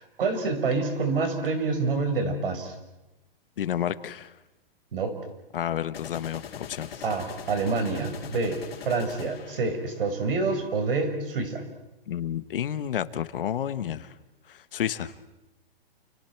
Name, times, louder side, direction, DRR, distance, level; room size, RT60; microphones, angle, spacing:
voice 1, 0.0-2.7 4.9-5.2 7.0-11.6, right 4 dB, 70° right, 6 dB, 5.4 m, -27 dB
sound 1, 1.2-1.3 5.9-10.1, left 7 dB, 85° left, 3.5 m, -42 dB
voice 2, 3.6-4.3 5.5-6.9 12.1-14.1 14.5-15.1, left 10 dB, 65° left, 13 dB, 1.3 m, -30 dB
30.0 x 29.0 x 4.6 m, 0.95 s
hypercardioid pair, 165°, 29 cm